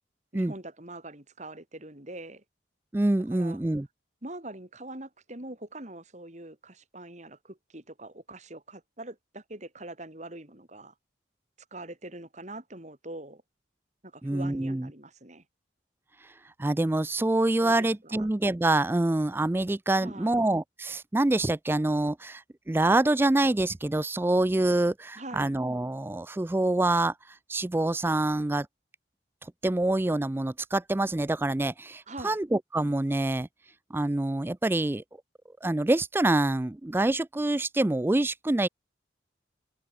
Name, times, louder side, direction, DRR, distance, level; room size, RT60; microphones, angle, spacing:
voice 1, 0.3-2.4 3.3-3.6 4.2-10.9 11.7-13.4 14.0-15.4 17.6-18.3 19.9-20.4 25.2-25.5 32.1-32.4, right 2 dB, 40° right, 3.3 m, -43 dB
voice 2, 2.9-3.9 14.2-14.9 16.6-22.4 22.7-27.1 27.5-28.7 29.6-33.5 33.9-35.0 35.6-38.7, right 2 dB, 10° right, 0.3 m, -26 dB
head